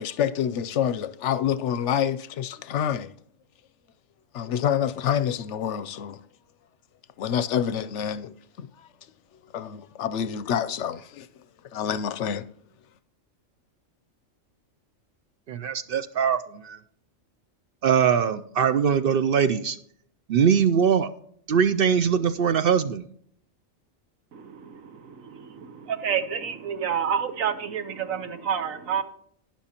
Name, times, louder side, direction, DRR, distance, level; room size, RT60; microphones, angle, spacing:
voice 1, 0.0-3.1 4.3-6.2 7.2-8.9 9.5-11.3 11.7-12.5, left 9 dB, 70° left, 0.8 m, -27 dB
voice 2, 15.5-16.8 17.8-19.8 20.3-21.1 21.5-23.1, right 7 dB, 60° right, 0.6 m, -22 dB
voice 3, 26.0-27.8 28.1-28.2 28.5-29.0, right 8 dB, 90° right, 1.3 m, -27 dB
12.0 x 10.5 x 2.9 m
omnidirectional pair, 1.4 m